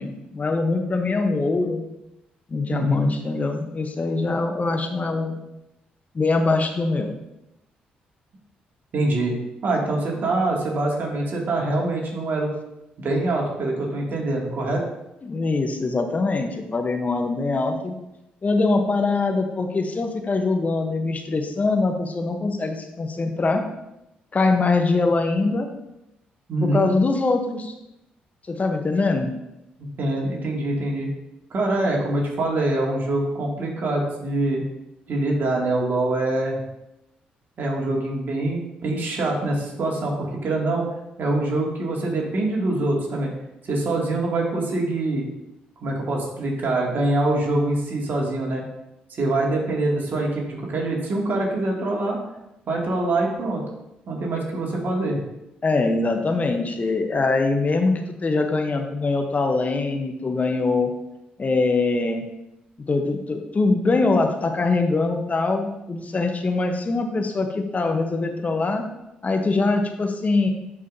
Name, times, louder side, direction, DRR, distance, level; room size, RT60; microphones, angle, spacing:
voice 1, 0.0-1.8 2.5-5.4 6.1-7.1 15.2-17.9 18.4-23.6 24.3-25.7 26.6-27.7 28.5-29.3 55.6-60.9 61.4-62.2 62.9-68.8 69.2-70.5, left 3 dB, 35° left, 5 dB, 1.0 m, -23 dB
voice 2, 2.7-3.1 8.9-9.3 9.6-12.5 13.0-14.8 26.5-26.9 30.0-31.1 31.5-34.6 35.1-36.6 37.6-40.1 40.4-40.9 41.2-43.3 43.7-45.2 45.8-48.6 49.1-52.2 52.7-53.6 54.1-55.2, right 2 dB, 55° right, -2 dB, 2.5 m, -24 dB
11.0 x 5.0 x 2.8 m, 0.88 s
hypercardioid pair, 45°, 4 cm